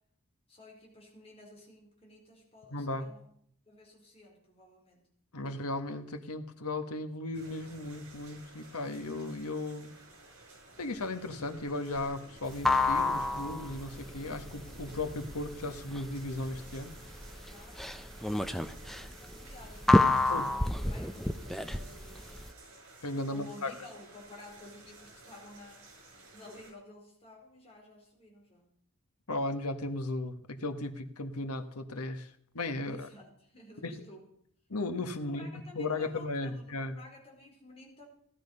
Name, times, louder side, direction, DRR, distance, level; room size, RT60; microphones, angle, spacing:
voice 1, 0.5-3.3 3.7-5.1 17.4-18.2 18.4-22.5 23.3-25.9 26.3-28.8 32.8-34.3 35.2-38.1, left 1 dB, 25° left, -1 dB, 4.6 m, -53 dB
voice 2, 2.7-3.1 5.3-9.9 10.8-17.0 20.3-20.5 23.0-23.8 29.3-33.1 33.8-34.0 34.7-37.0, left 2 dB, 85° left, 8 dB, 1.5 m, -36 dB
sound 1, 7.3-26.7, right 2 dB, 75° right, 6.4 m, -53 dB
sound 2, 12.5-22.5, left 2 dB, ahead, 0.6 m, -29 dB
17.5 x 11.5 x 5.5 m, 0.65 s
head